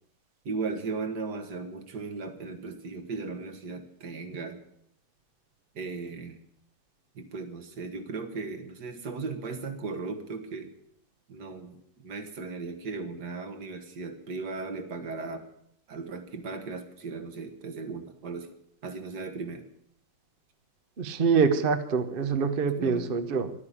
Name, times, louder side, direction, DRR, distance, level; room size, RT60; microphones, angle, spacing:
voice 1, 0.5-4.6 5.8-6.4 7.2-10.7 11.3-15.5 15.9-18.5 18.8-19.7 22.8-23.0, right 4 dB, 55° right, 7 dB, 2.0 m, -37 dB
voice 2, 21.0-23.5, right 5 dB, 40° right, 9 dB, 0.8 m, -25 dB
12.0 x 9.6 x 9.9 m, 0.72 s
omnidirectional pair, 2.1 m